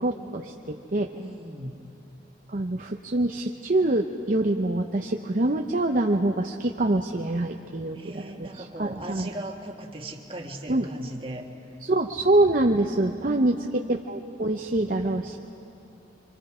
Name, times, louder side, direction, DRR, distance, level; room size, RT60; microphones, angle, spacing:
voice 1, 0.0-1.1 2.5-9.3 10.7-10.9 11.9-13.6 13.9-15.4, right 2 dB, 45° right, 3 dB, 0.7 m, -25 dB
voice 2, 1.1-1.8 7.9-11.5 12.9-13.8, right 1 dB, 30° right, 1 dB, 1.6 m, -38 dB
27.0 x 25.5 x 5.0 m, 2.7 s
head